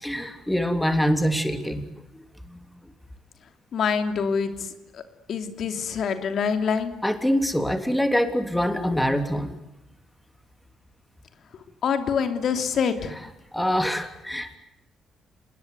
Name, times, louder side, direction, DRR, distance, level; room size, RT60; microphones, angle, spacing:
voice 1, 0.0-1.8 7.0-9.5 13.5-14.6, equal, 5° left, 7 dB, 3.2 m, -24 dB
voice 2, 3.7-4.7 4.9-5.0 5.3-6.9 11.8-13.1, left 6 dB, 65° left, 7 dB, 2.9 m, -25 dB
27.5 x 20.0 x 9.5 m, 0.88 s
cardioid pair, 90°, 0 cm